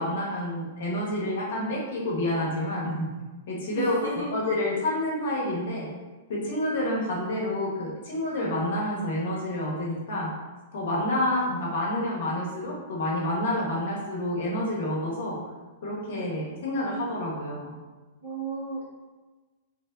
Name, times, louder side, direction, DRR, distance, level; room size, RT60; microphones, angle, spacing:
voice 1, 0.0-3.1 3.5-4.0 4.3-5.9 6.3-10.3 10.7-15.4 15.8-17.7, left 1 dB, 65° left, -3 dB, 0.8 m, -28 dB
voice 2, 3.7-4.4 18.2-18.8, right 3 dB, 80° right, -6 dB, 1.0 m, -33 dB
3.2 x 2.1 x 2.3 m, 1.2 s
figure-of-eight pair, 105°, 0 cm